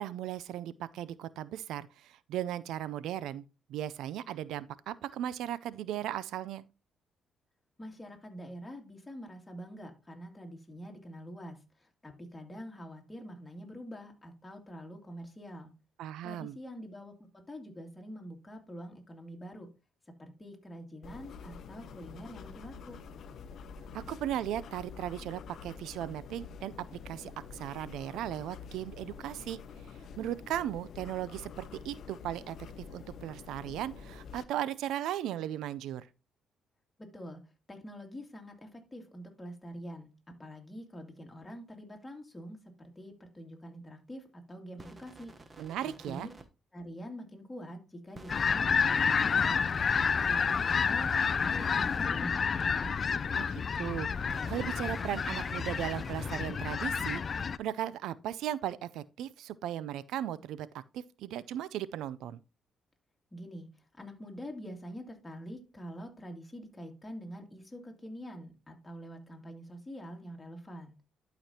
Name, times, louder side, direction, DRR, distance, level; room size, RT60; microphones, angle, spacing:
voice 1, 0.0-3.4 3.7-6.6 16.0-16.6 23.9-26.7 27.1-29.6 30.2-36.1 45.6-46.3 53.3-60.7 60.9-62.4, right 11 dB, 85° right, 0.4 m, -37 dB
voice 2, 7.8-15.7 16.2-17.1 17.5-19.7 20.2-23.0 37.0-37.4 37.7-45.3 45.8-46.3 46.7-49.6 50.0-53.0 63.3-70.9, equal, 15° left, 2.3 m, -45 dB
sound 1, 21.0-34.4, left 5 dB, 65° left, 0.7 m, -47 dB
sound 2, 44.8-46.5 48.1-52.1 54.2-56.4, right 3 dB, 30° right, 1.0 m, -50 dB
sound 3, 48.3-57.6, left 6 dB, 45° left, 0.3 m, -29 dB
11.5 x 5.1 x 2.8 m
cardioid pair, 90°, 0 cm